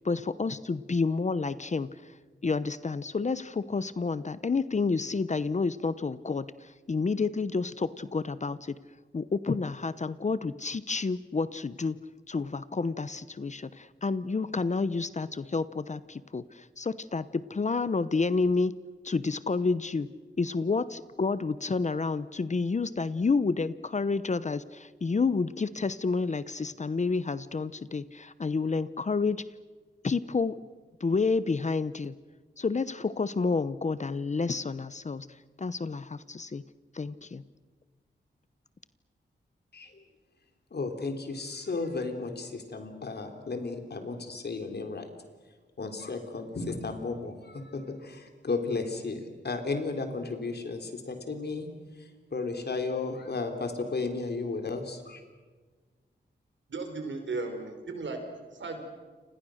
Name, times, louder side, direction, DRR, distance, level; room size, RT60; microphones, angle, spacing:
voice 1, 0.0-2.1 2.4-8.8 9.1-12.0 12.3-18.7 19.0-20.1 20.4-29.4 30.0-30.6 31.0-32.1 32.6-35.3 35.6-36.6 36.9-37.4, left 4 dB, 40° left, 0.8 m, -29 dB
voice 2, 40.7-45.0 45.8-49.2 49.4-51.7 52.3-55.2, left 3 dB, 60° left, 3.8 m, -34 dB
voice 3, 56.7-58.2 58.6-58.8, right 3 dB, 80° right, 5.0 m, -35 dB
29.5 x 27.0 x 6.5 m
wide cardioid pair, 105°, 19 cm